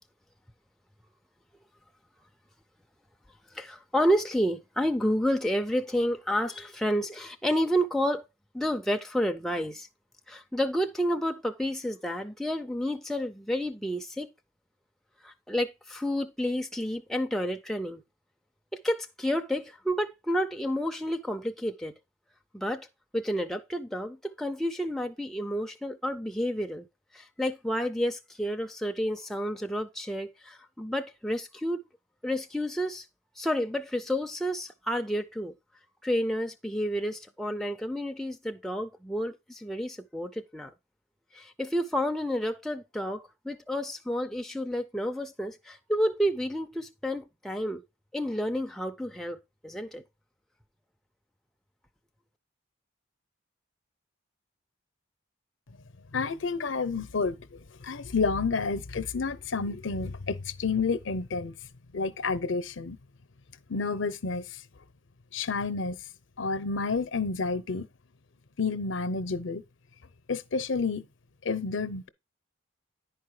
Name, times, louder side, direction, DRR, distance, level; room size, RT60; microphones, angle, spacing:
voice 1, 3.5-8.2 8.5-9.9 10.3-14.3 15.2-18.0 18.7-21.9 22.5-22.9 23.1-26.8 27.1-31.8 32.2-33.0 33.4-35.5 36.0-40.7 41.3-47.8 48.1-49.4 49.6-50.0, equal, ahead, 0.4 m, -30 dB
voice 2, 56.1-61.5 61.9-63.0 63.7-64.4 65.3-66.0 66.4-67.9 68.6-69.6 70.3-71.1 71.4-72.1, left 4 dB, 70° left, 0.7 m, -30 dB
10.5 x 4.6 x 4.8 m
head